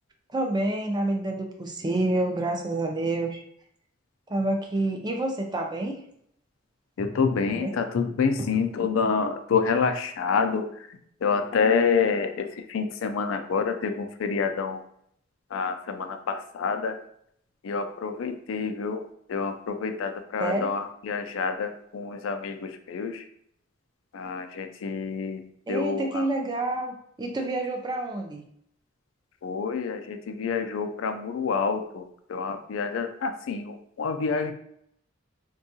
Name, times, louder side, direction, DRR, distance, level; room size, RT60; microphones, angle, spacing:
voice 1, 0.3-3.4 4.3-6.0 7.5-7.7 8.4-8.5 20.4-20.8 25.7-28.4, right 2 dB, 20° right, 3 dB, 0.4 m, -28 dB
voice 2, 7.0-10.6 11.2-14.8 15.5-17.0 17.6-19.0 19.3-23.2 24.1-25.4 25.7-26.2 29.4-32.0 32.3-34.5, left 5 dB, 85° left, 7 dB, 0.4 m, -27 dB
3.6 x 2.3 x 2.7 m, 0.70 s
head